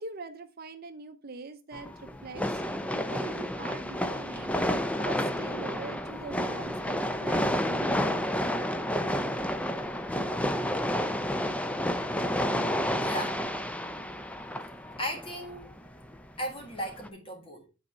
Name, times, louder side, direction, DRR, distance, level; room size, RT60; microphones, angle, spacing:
voice 1, 0.0-2.6 3.1-4.6 5.0-8.3, right 3 dB, 50° right, 0.7 m, -43 dB
sound 1, 1.7-17.1, equal, 5° left, 0.5 m, -30 dB
voice 2, 13.0-13.4 15.0-15.7 16.4-17.7, equal, 30° left, 2.0 m, -36 dB
9.2 x 4.2 x 4.4 m
head